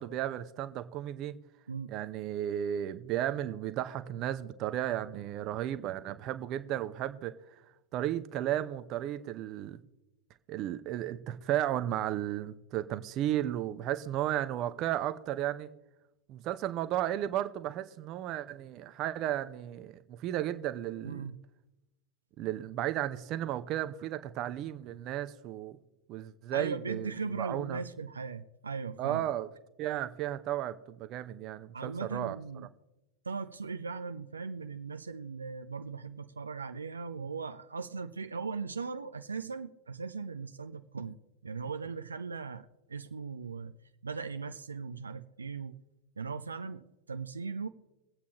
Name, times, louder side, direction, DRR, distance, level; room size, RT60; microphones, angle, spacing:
voice 1, 0.0-1.3 1.9-7.3 7.9-9.8 10.5-15.7 16.3-21.2 22.4-25.8 26.1-27.8 29.0-29.5 29.8-32.4, right 12 dB, 35° right, 0.7 m, -34 dB
voice 2, 21.0-21.4 26.5-29.3 31.7-32.7 33.3-41.2 41.4-43.7 44.0-45.8 46.2-47.7, right 5 dB, 75° right, 0.5 m, -38 dB
23.5 x 8.3 x 3.0 m
figure-of-eight pair, 90°, 0 cm